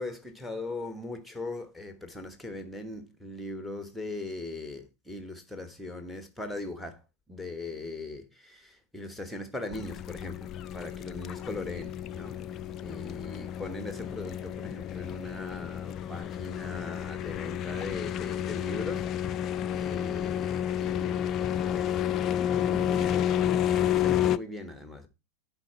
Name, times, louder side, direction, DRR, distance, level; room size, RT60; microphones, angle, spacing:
voice 1, 0.0-7.0 7.3-25.1, left 2 dB, ahead, 1.3 m, -40 dB
sound 1, 9.7-24.4, left 10 dB, 30° left, 0.3 m, -30 dB
10.5 x 4.6 x 4.3 m
figure-of-eight pair, 90°, 0 cm